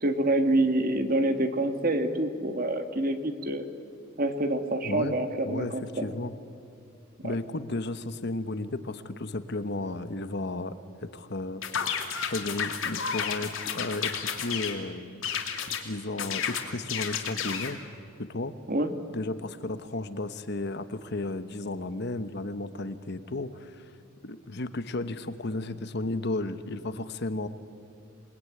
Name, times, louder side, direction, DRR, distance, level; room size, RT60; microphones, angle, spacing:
voice 1, 0.0-3.6 4.2-6.1 18.7-18.9, right 1 dB, 45° right, 8 dB, 1.7 m, -26 dB
voice 2, 4.8-5.2 5.4-6.3 7.2-10.8 11.0-11.6 12.3-15.2 15.7-17.8 18.2-18.5 19.1-23.8 24.2-27.5, left 2 dB, 55° left, 11 dB, 1.1 m, -33 dB
sound 1, 11.6-14.8 15.2-15.8 16.2-17.8, left 7 dB, 70° left, 2.6 m, -32 dB
27.5 x 20.5 x 9.7 m, 2.5 s
head